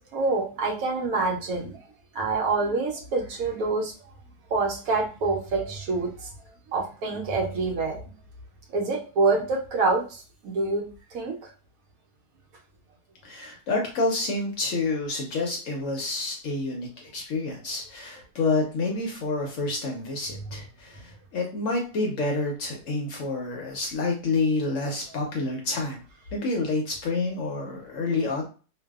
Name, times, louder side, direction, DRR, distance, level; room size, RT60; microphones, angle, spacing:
voice 1, 0.1-1.8 2.1-3.9 4.5-6.3 6.7-8.0 8.7-10.9 11.1-11.4, right 3 dB, 70° right, 0 dB, 1.0 m, -26 dB
voice 2, 13.2-26.0 26.3-28.5, left 3 dB, 65° left, 1 dB, 0.8 m, -28 dB
2.6 x 2.2 x 2.2 m, 0.36 s
omnidirectional pair, 1.7 m